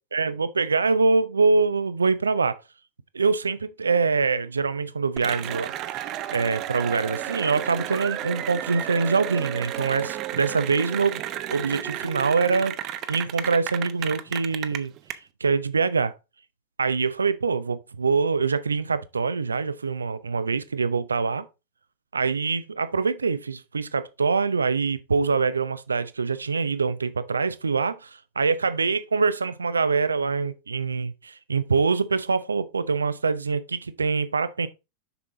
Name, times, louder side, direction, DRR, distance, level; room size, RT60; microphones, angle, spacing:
voice 1, 0.1-2.6 3.1-11.2 11.5-16.1 16.8-21.5 22.1-34.7, right 4 dB, 75° right, 0.6 m, -24 dB
Cheering / Applause, 5.2-15.1, right 12 dB, 35° right, 0.7 m, -32 dB
6.9 x 6.0 x 3.7 m
figure-of-eight pair, 90°, 0 cm